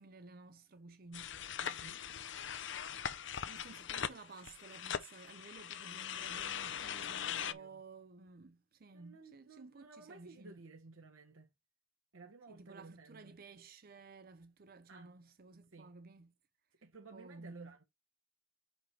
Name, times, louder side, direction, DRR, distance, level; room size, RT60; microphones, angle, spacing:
voice 1, 0.0-1.4 2.9-10.6 12.5-16.3 17.1-17.7, right 3 dB, 45° right, 0.6 m, -54 dB
sound 1, 1.1-7.5, left 8 dB, 60° left, 0.6 m, -41 dB
voice 2, 1.6-2.0 7.2-7.8 8.9-11.5 12.1-13.4 14.9-15.1 15.7-15.9 16.8-17.8, right 3 dB, 80° right, 1.0 m, -56 dB
5.6 x 5.3 x 4.5 m
head